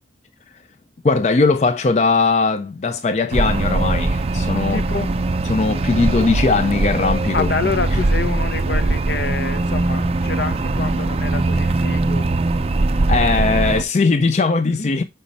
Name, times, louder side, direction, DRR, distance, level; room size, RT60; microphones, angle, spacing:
voice 1, 1.0-4.8 5.4-7.5 7.9-8.0 13.1-15.0, left 3 dB, 40° left, 0.4 m, -19 dB
sound 1, 3.3-13.8, right 2 dB, 35° right, 0.4 m, -21 dB
voice 2, 4.7-5.2 7.3-12.3 14.6-14.9, left 4 dB, 65° left, 0.8 m, -27 dB
5.5 x 5.2 x 4.0 m
head